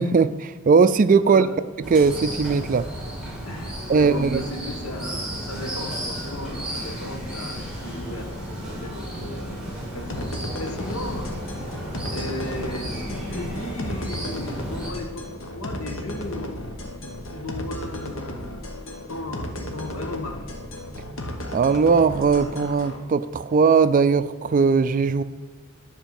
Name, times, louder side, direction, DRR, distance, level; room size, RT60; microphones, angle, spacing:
voice 1, 0.0-1.5 1.9-2.8 3.9-4.4 21.5-25.2, right 5 dB, 40° right, 13 dB, 0.3 m, -19 dB
voice 2, 1.2-1.6 3.4-11.8 12.1-18.8 19.1-20.6, left 2 dB, 85° left, 3 dB, 1.5 m, -36 dB
sound 1, 1.8-14.9, equal, 5° right, 2.3 m, -33 dB
sound 2, 10.1-23.0, left 1 dB, 65° left, 1.2 m, -35 dB
10.5 x 4.5 x 7.1 m, 1.5 s
head